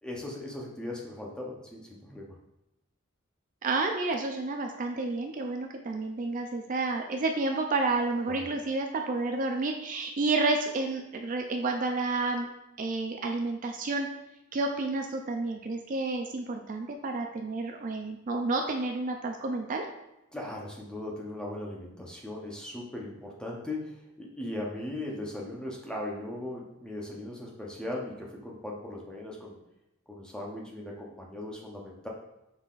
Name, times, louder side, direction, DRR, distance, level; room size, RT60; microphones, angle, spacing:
voice 1, 0.0-2.3 8.3-8.5 20.3-29.6 30.1-32.1, left 1 dB, 5° left, -3 dB, 0.7 m, -38 dB
voice 2, 3.6-12.5 12.8-14.1 14.5-19.8, right 3 dB, 40° right, 3 dB, 0.4 m, -30 dB
5.5 x 3.9 x 2.5 m, 0.92 s
head